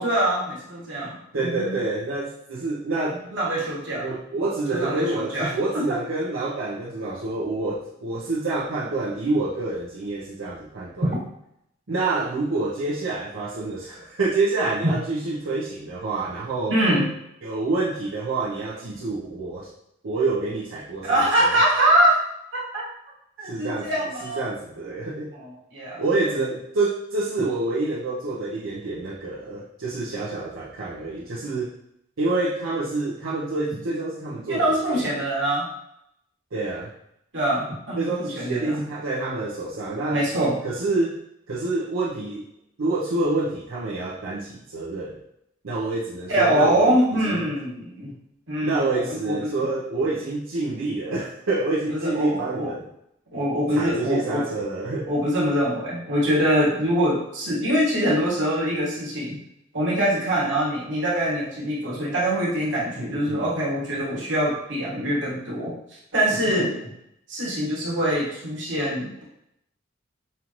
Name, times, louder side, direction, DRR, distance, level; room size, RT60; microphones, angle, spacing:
voice 1, 0.0-1.1 1.4-1.8 3.3-4.1 4.7-5.5 5.7-5.8 11.0-11.2 16.7-17.1 21.0-22.2 22.5-22.8 23.4-24.4 25.3-26.0 34.5-35.7 37.3-38.8 40.1-40.6 46.3-48.2 48.5-49.7 51.9-52.7 53.3-54.4 55.1-59.4 59.7-66.9 67.3-69.2, right 1 dB, 60° right, -6 dB, 1.5 m, -24 dB
voice 2, 1.3-3.3 4.0-11.1 11.9-16.8 17.4-19.7 20.0-21.6 23.4-23.9 24.2-25.3 26.0-31.7 32.2-34.6 34.9-35.0 36.5-36.9 38.0-40.2 40.6-41.2 41.5-42.4 42.8-45.2 45.6-46.9 47.2-47.4 48.6-52.9 53.7-55.1 63.0-63.4, right 3 dB, 85° right, -6 dB, 0.7 m, -27 dB
5.6 x 2.5 x 3.0 m, 0.78 s
head